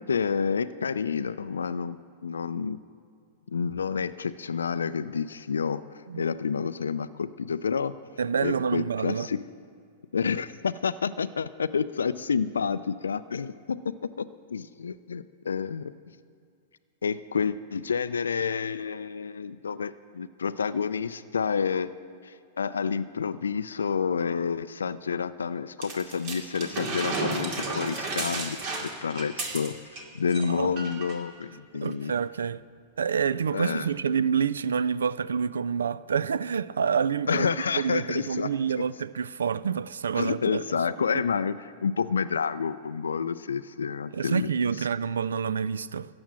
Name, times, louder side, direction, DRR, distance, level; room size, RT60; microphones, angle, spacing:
voice 1, 0.0-2.8 3.5-7.9 8.4-9.4 10.1-15.9 17.0-21.9 22.2-29.8 30.1-32.1 33.5-33.9 37.3-38.5 40.1-44.5 44.8-44.9, left 6 dB, 85° left, 0.3 m, -29 dB
voice 2, 8.2-9.3 30.5-30.7 31.8-32.6 33.0-40.6 41.1-41.2 44.1-46.1, right 6 dB, 80° right, 0.3 m, -28 dB
sound 1, 25.8-30.0 30.3-30.5 30.8-31.2 31.9-32.0, right 3 dB, 50° right, 2.3 m, -33 dB
14.0 x 8.7 x 7.4 m
hypercardioid pair, 105°, 0 cm